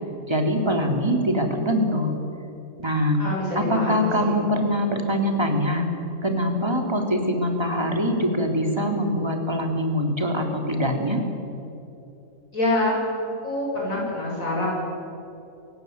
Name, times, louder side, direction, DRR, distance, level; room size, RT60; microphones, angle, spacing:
voice 1, 0.3-2.1 2.8-3.2 3.5-5.9 6.2-11.2, equal, 20° right, 3 dB, 3.1 m, -23 dB
voice 2, 3.2-4.4 12.5-12.9 13.4-14.7, left 2 dB, 75° left, -4 dB, 7.3 m, -26 dB
28.0 x 17.0 x 9.4 m, 2.9 s
omnidirectional pair, 1.5 m